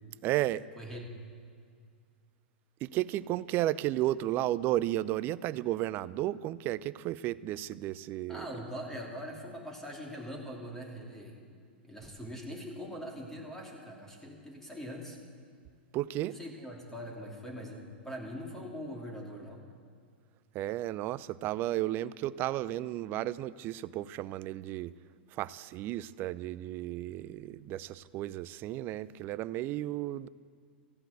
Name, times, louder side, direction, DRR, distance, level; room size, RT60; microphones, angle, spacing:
voice 1, 0.2-0.7 2.8-8.5 15.9-16.4 20.5-24.9 25.3-30.3, right 15 dB, 35° right, 19 dB, 0.5 m, -33 dB
voice 2, 0.8-1.1 8.3-11.4 11.8-15.2 16.2-19.6, equal, 5° left, -1 dB, 2.9 m, -42 dB
15.5 x 11.5 x 8.0 m, 2.1 s
figure-of-eight pair, 100°, 6 cm